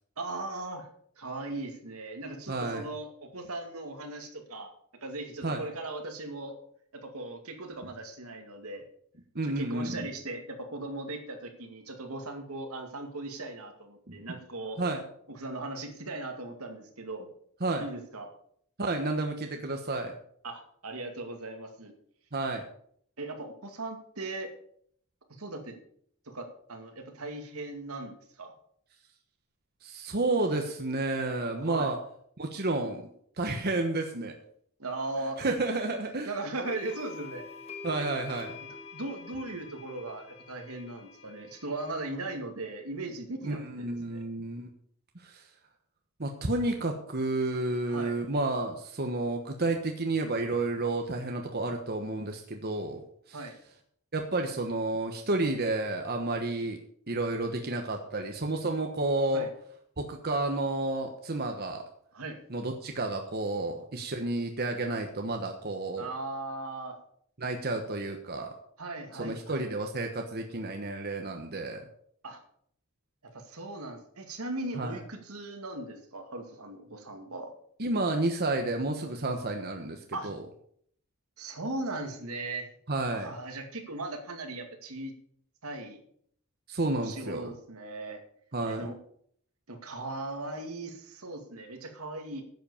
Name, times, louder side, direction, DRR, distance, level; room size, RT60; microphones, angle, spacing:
voice 1, 0.2-0.9 1.2-4.7 5.0-6.6 6.9-8.8 9.4-14.8 15.3-17.3 17.8-18.3 20.4-21.9 23.2-24.5 25.4-25.8 26.3-28.5 31.6-31.9 34.8-35.5 36.2-37.5 38.0-38.1 38.6-44.2 47.9-48.1 53.3-53.5 59.3-59.5 62.1-62.4 66.0-67.0 68.8-69.7 72.2-72.4 73.2-77.5 80.1-80.3 81.4-82.7 83.1-85.1 85.6-86.0 86.9-88.2 88.6-89.0 89.7-92.4, right 2 dB, 75° right, 5 dB, 2.3 m, -38 dB
voice 2, 2.5-2.8 5.4-5.6 9.3-10.1 14.1-14.2 14.8-15.0 17.6-17.8 18.8-20.1 22.3-22.6 29.8-32.0 32.4-33.0 33.4-34.3 35.4-36.3 37.8-38.5 43.4-44.7 45.1-45.4 46.2-53.0 53.3-53.5 54.1-56.8 57.1-59.5 60.0-61.8 62.5-66.1 67.4-68.5 69.2-71.8 74.7-75.0 77.8-80.4 82.9-83.3 86.7-87.5 88.5-88.8, right 2 dB, 45° right, 4 dB, 1.2 m, -31 dB
sound 1, 36.6-41.9, left 4 dB, 30° left, 2.3 m, -46 dB
10.5 x 7.9 x 7.1 m, 0.65 s
head